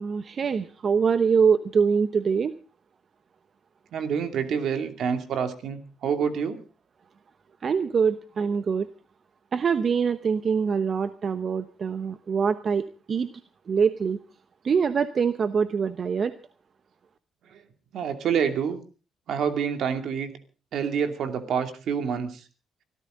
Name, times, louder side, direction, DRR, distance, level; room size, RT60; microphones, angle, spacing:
voice 1, 0.0-2.5 7.6-8.9 9.5-13.3 13.7-14.2 14.6-16.3, right 6 dB, 45° right, 12 dB, 0.9 m, -24 dB
voice 2, 3.9-6.6 17.5-17.6 17.9-18.8 19.3-20.3 20.7-22.4, right 7 dB, 70° right, 7 dB, 2.6 m, -27 dB
24.5 x 14.0 x 3.8 m, 0.36 s
cardioid pair, 90°, 0 cm